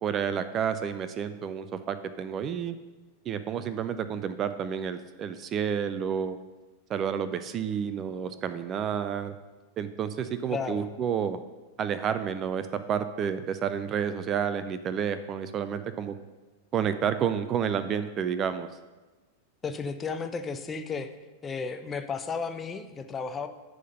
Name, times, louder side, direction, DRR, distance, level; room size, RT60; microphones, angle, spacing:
voice 1, 0.0-2.8 3.2-6.4 6.9-9.4 9.8-11.4 11.8-16.2 16.7-18.7, right 8 dB, 30° right, 11 dB, 0.4 m, -30 dB
voice 2, 10.5-10.9 19.6-21.1 21.4-23.5, left 5 dB, 20° left, 8 dB, 0.6 m, -33 dB
11.0 x 3.7 x 6.6 m, 1.2 s
figure-of-eight pair, 90°, 0 cm